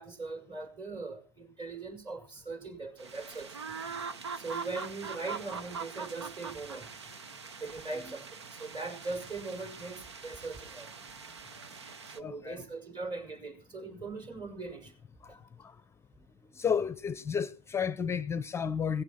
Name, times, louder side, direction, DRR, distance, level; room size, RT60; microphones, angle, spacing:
voice 1, 0.0-3.5 4.4-6.9 7.6-10.9 12.1-14.9, right 3 dB, 35° right, 5.9 m, -40 dB
sound 1, 3.0-12.2, right 5 dB, 85° right, 1.1 m, -43 dB
voice 2, 12.2-12.6 15.2-15.8 16.5-19.0, left 7 dB, 20° left, 0.7 m, -32 dB
17.5 x 15.5 x 4.4 m
hypercardioid pair, 90°, 14 cm